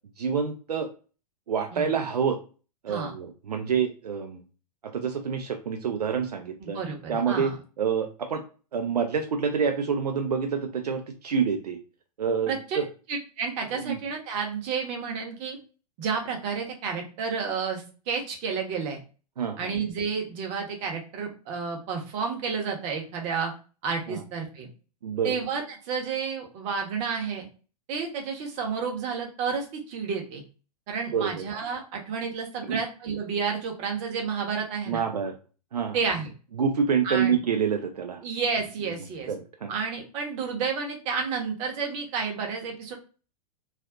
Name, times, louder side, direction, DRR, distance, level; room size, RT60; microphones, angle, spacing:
voice 1, 0.2-0.9 1.5-2.4 2.8-4.4 4.8-6.8 7.1-8.4 8.7-11.8 12.2-12.9 13.9-14.0 19.4-19.7 24.1-24.2 25.0-25.4 31.1-31.4 32.7-32.8 34.9-35.3 35.7-36.0 36.6-38.2 39.3-39.7, right 6 dB, 70° right, 5 dB, 0.4 m, -27 dB
voice 2, 6.6-7.6 12.5-15.6 16.0-19.0 19.6-23.5 23.8-24.7 25.2-27.5 27.9-30.4 30.9-35.0 35.9-36.3 37.0-37.4 38.2-39.3 39.7-42.9, right 5 dB, 35° right, 2 dB, 0.8 m, -31 dB
2.4 x 2.4 x 2.3 m, 0.36 s
figure-of-eight pair, 100°, 21 cm